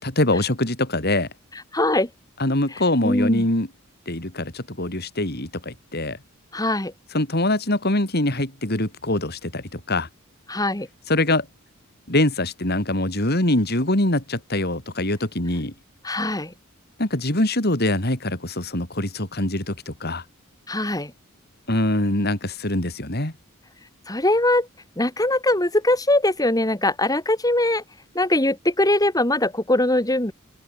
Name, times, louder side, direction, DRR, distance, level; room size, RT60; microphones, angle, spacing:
voice 1, 0.0-1.3 2.4-3.7 4.1-6.2 7.1-10.1 11.1-11.5 12.1-15.7 17.0-20.2 21.7-23.3, left 1 dB, 45° left, 3.9 m, -23 dB
voice 2, 1.7-2.1 2.7-3.4 6.5-6.9 10.5-10.9 16.0-16.5 20.7-21.1 24.1-24.7 25.0-27.8 28.1-30.3, left 1 dB, 15° left, 3.0 m, -21 dB
open air
head